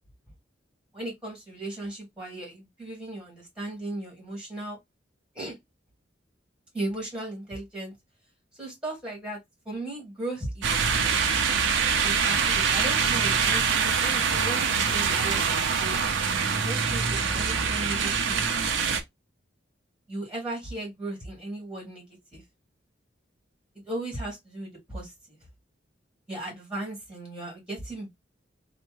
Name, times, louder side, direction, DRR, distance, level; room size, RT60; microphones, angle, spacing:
voice 1, 0.9-4.8 5.3-5.6 6.7-7.9 8.6-9.4 9.6-11.3 12.0-15.4 15.8-16.1 16.6-18.4 20.1-22.0 22.3-22.4 23.8-25.4 26.3-28.2, right 1 dB, 5° right, 1.7 m, -36 dB
sound 1, 10.6-19.0, right 6 dB, 85° right, 0.6 m, -24 dB
3.3 x 2.1 x 3.0 m
head